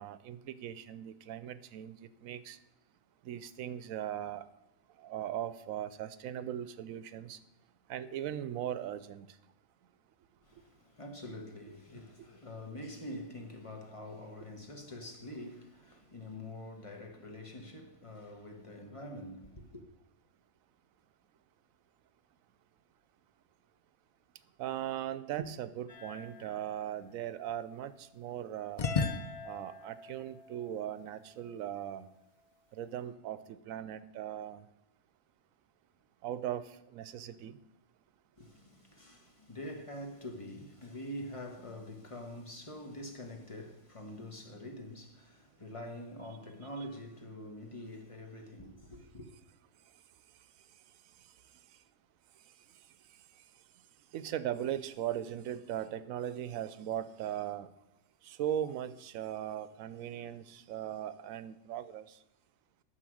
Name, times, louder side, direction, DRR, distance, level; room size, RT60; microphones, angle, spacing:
voice 1, 0.0-2.6 3.2-4.4 5.0-7.4 7.9-9.3 24.6-28.8 29.4-32.1 32.7-34.6 36.2-37.6 54.1-57.7 58.2-62.2, right 11 dB, 80° right, 1.0 m, -39 dB
voice 2, 10.4-19.8 38.4-49.3, left 1 dB, 25° left, 1.1 m, -45 dB
sound 1, 25.9-28.0 28.8-31.7, left 5 dB, 40° left, 0.5 m, -39 dB
9.8 x 6.4 x 6.2 m
omnidirectional pair, 1.4 m